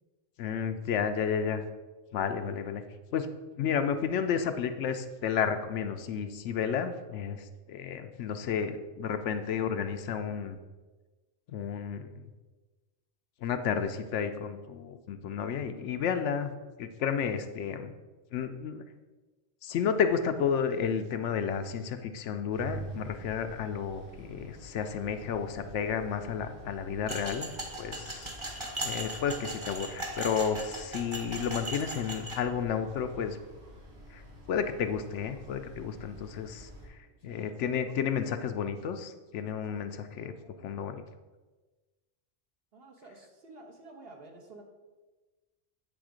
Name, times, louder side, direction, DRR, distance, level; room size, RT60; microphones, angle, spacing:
voice 1, 0.4-1.6 2.1-2.8 3.1-3.3 3.6-10.6 11.5-12.2 13.4-16.5 16.8-17.9 18.3-18.8 19.6-27.5 27.8-28.3 28.8-33.4 34.1-34.2 34.5-40.3 40.6-41.0, left 7 dB, 75° left, 8 dB, 0.9 m, -32 dB
sound 1, 22.5-36.9, right 1 dB, 90° right, 2.2 m, -48 dB
sound 2, 27.1-32.4, right 1 dB, 25° right, 1.1 m, -38 dB
voice 2, 37.3-38.8 39.7-39.9 40.2-40.7 42.7-44.6, right 2 dB, 55° right, 2 dB, 1.3 m, -52 dB
8.9 x 3.4 x 4.9 m, 1.2 s
omnidirectional pair, 1.3 m